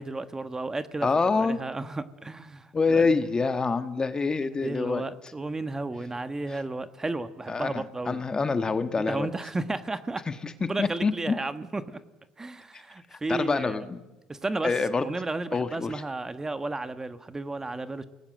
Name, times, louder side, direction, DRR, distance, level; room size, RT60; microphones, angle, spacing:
voice 1, 0.0-1.1 1.4-3.2 4.6-8.2 9.1-10.2 10.7-12.0 12.4-13.9 14.3-14.7 15.0-18.0, right 2 dB, 20° right, 11 dB, 1.4 m, -33 dB
voice 2, 1.0-1.6 2.7-5.0 6.5-6.6 7.5-9.3 10.3-10.5 10.8-11.3 13.1-14.0 14.6-15.0 15.5-16.0, left 4 dB, 30° left, 10 dB, 1.5 m, -26 dB
28.5 x 19.0 x 7.6 m, 1.1 s
supercardioid pair, 80°, 3 cm